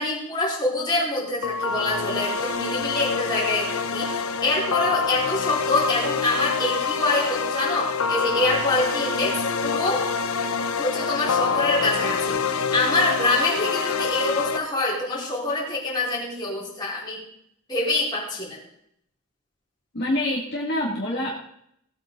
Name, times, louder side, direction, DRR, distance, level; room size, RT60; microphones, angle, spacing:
voice 1, 0.0-10.1 10.8-17.2 17.7-18.6, left 2 dB, 20° left, -5 dB, 4.9 m, -25 dB
sound 1, 1.4-14.6, left 5 dB, 80° left, 1.1 m, -26 dB
voice 2, 19.9-21.3, left 1 dB, 50° left, -4 dB, 2.5 m, -26 dB
18.5 x 8.7 x 4.0 m, 0.71 s
head